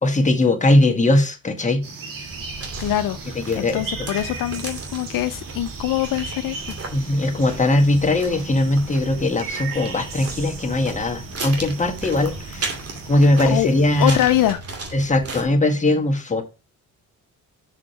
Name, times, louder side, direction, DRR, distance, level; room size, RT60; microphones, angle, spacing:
voice 1, 0.0-1.9 3.5-4.1 6.9-12.8 13.1-14.2 14.9-16.4, left 2 dB, 20° left, 3 dB, 1.6 m, -20 dB
sound 1, 1.8-14.5, right 4 dB, 70° right, 2.4 m, -37 dB
sound 2, 2.3-15.4, right 3 dB, 45° right, 2.5 m, -36 dB
voice 2, 2.8-6.7 13.5-13.7 14.0-14.6, left 13 dB, 70° left, 10 dB, 0.6 m, -23 dB
6.3 x 5.0 x 4.5 m, 0.30 s
cardioid pair, 85°, 35 cm